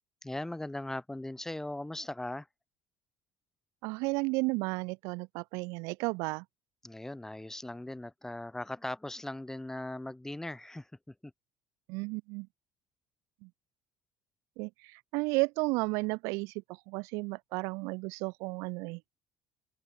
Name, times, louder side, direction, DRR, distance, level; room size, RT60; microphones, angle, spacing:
voice 1, 0.2-2.5 6.8-11.3, left 1 dB, 10° left, 5.0 m, -39 dB
voice 2, 3.8-6.4 11.9-12.5 13.4-13.5 14.6-16.5 16.9-19.1, right 27 dB, 80° right, 1.9 m, -33 dB
open air
supercardioid pair, 85°, 5 cm